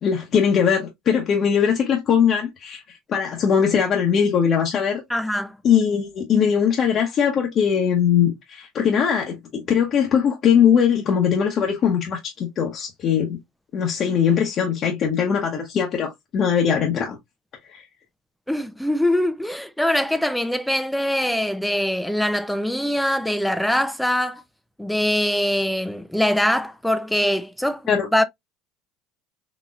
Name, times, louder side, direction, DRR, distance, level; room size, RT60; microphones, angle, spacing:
voice 1, 0.0-2.8 3.1-5.0 5.6-13.4 13.7-17.2 17.7-17.8 27.9-28.1, left 7 dB, 45° left, 0.9 m, -20 dB
voice 2, 5.1-5.6 18.5-24.4 24.8-28.2, left 1 dB, 5° left, 0.4 m, -23 dB
4.0 x 2.9 x 2.3 m
supercardioid pair, 110°, 0 cm